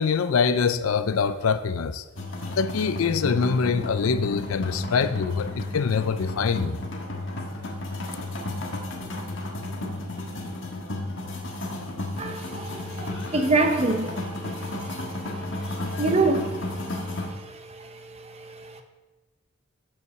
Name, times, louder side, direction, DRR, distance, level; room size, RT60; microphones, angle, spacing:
voice 1, 0.0-2.0 2.5-6.8, left 5 dB, 80° left, 0.4 m, -24 dB
sound 1, 2.1-17.3, left 2 dB, 60° left, 1.4 m, -33 dB
voice 2, 12.2-12.7 13.3-14.2 16.0-16.5, right 3 dB, 30° right, 0.7 m, -23 dB
7.7 x 5.5 x 6.6 m
head